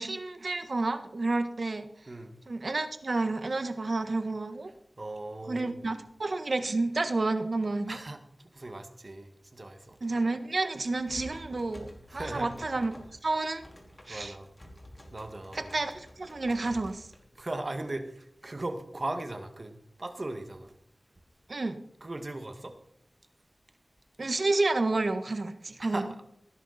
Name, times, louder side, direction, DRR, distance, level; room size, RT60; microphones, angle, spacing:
voice 1, 0.0-1.9 2.5-4.7 5.5-8.0 10.0-12.9 13.2-13.6 14.1-14.3 15.5-17.1 21.5-21.8 24.2-26.0, right 2 dB, 65° right, 9 dB, 1.5 m, -30 dB
voice 2, 5.0-5.8 7.9-8.2 8.5-10.0 12.1-12.6 14.1-14.5 15.1-15.7 17.4-20.7 22.0-22.7 25.8-26.3, right 2 dB, 50° right, 7 dB, 2.2 m, -38 dB
sound 1, 10.7-17.6, equal, 30° left, 4.6 m, -49 dB
18.5 x 11.0 x 4.4 m, 0.70 s
wide cardioid pair, 45°, 0 cm